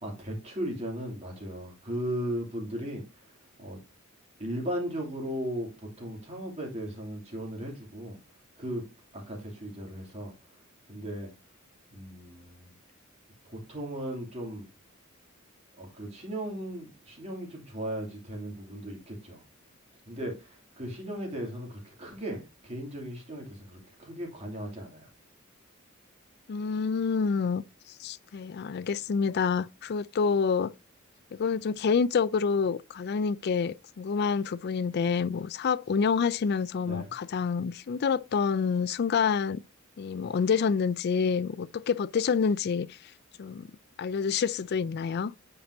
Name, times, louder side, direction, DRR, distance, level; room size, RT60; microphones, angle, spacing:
voice 1, 0.0-3.0 3.6-3.8 4.4-8.2 8.6-8.8 9.1-10.3 10.9-11.3 11.9-12.7 13.4-14.7 15.8-19.4 20.1-25.1 36.8-37.1, equal, 30° right, 2.7 m, -37 dB
voice 2, 26.5-27.6 28.0-30.7 31.3-39.6 40.0-43.0 43.4-43.7 44.0-45.3, left 5 dB, 50° left, 0.3 m, -27 dB
8.7 x 5.3 x 2.7 m
head